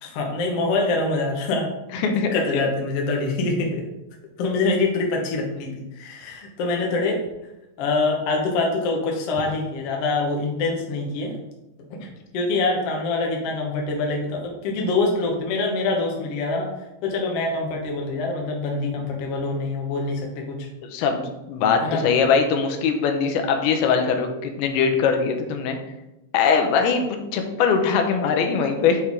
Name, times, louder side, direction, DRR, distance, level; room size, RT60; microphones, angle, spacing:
voice 1, 0.0-2.0 2.3-3.8 4.4-7.2 7.8-11.3 12.0-12.1 12.3-16.7 17.0-20.7 21.8-22.0, left 3 dB, 70° left, 0 dB, 1.4 m, -25 dB
voice 2, 1.9-2.7 20.8-25.8 26.3-29.0, left 6 dB, 85° left, 5 dB, 2.7 m, -21 dB
8.3 x 4.4 x 3.6 m, 0.95 s
omnidirectional pair, 4.4 m